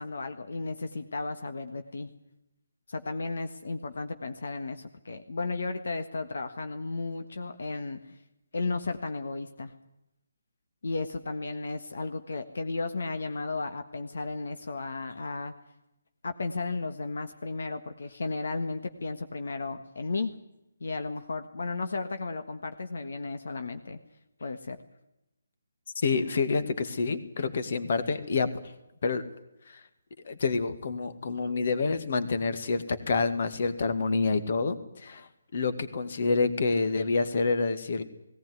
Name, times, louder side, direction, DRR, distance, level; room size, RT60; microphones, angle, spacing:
voice 1, 0.0-2.1 2.9-8.2 8.5-9.7 10.8-15.5 16.2-20.3 20.8-24.0 24.4-24.8, left 3 dB, 70° left, 7 dB, 1.6 m, -34 dB
voice 2, 26.0-28.5 29.0-29.2 29.7-29.8 30.3-38.0, left 4 dB, 50° left, 10 dB, 2.1 m, -28 dB
18.0 x 17.5 x 9.6 m, 0.89 s
hypercardioid pair, 165°, 0 cm